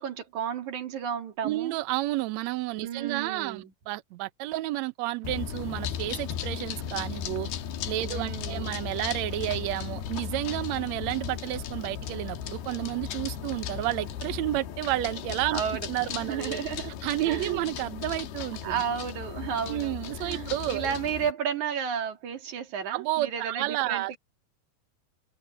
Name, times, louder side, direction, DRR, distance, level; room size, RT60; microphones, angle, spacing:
voice 1, 0.0-1.8 2.8-3.7 8.1-8.8 15.5-16.9 17.3-17.6 18.6-24.2, right 8 dB, 55° right, 3.4 m, -33 dB
voice 2, 1.4-7.5 7.9-15.6 15.9-16.6 17.0-18.7 19.7-20.9 22.9-24.1, right 16 dB, 85° right, 1.5 m, -31 dB
sound 1, 5.2-21.3, left 9 dB, 90° left, 3.4 m, -36 dB
omnidirectional pair, 4.3 m